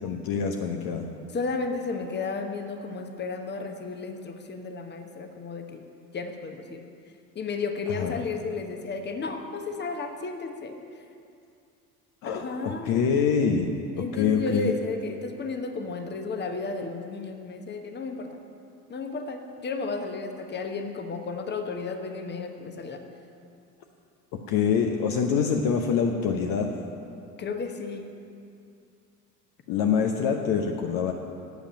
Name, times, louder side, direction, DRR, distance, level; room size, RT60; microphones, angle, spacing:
voice 1, 0.0-1.1 8.0-8.2 12.2-13.7 14.0-14.7 24.5-26.7 29.7-31.1, left 6 dB, 45° left, 3 dB, 0.9 m, -25 dB
voice 2, 1.3-5.8 6.1-6.8 7.3-10.8 12.2-13.0 13.9-18.4 18.9-23.0 27.4-28.1, left 4 dB, 20° left, 5 dB, 1.1 m, -33 dB
8.5 x 8.2 x 9.1 m, 2.5 s
figure-of-eight pair, 65°, 48 cm